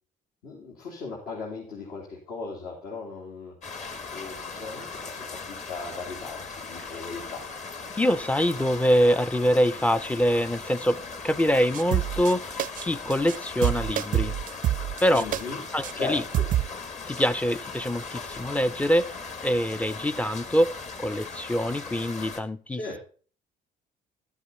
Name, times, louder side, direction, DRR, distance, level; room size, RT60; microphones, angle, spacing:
voice 1, 0.4-3.5 4.1-7.4 15.1-15.6 15.9-16.5 22.7-23.0, left 4 dB, 75° left, 3.4 m, -37 dB
sound 1, 3.6-22.4, left 4 dB, 45° left, 1.6 m, -39 dB
voice 2, 8.0-14.3 15.0-15.3 15.7-16.2 17.1-19.1 19.4-22.8, equal, 10° left, 0.4 m, -24 dB
sound 2, 11.7-12.3 12.6-12.8 13.1-13.4 13.6-15.4 15.8-15.9 16.3-16.7, right 12 dB, 55° right, 0.4 m, -26 dB
12.0 x 8.2 x 4.1 m
cardioid pair, 110°, 17 cm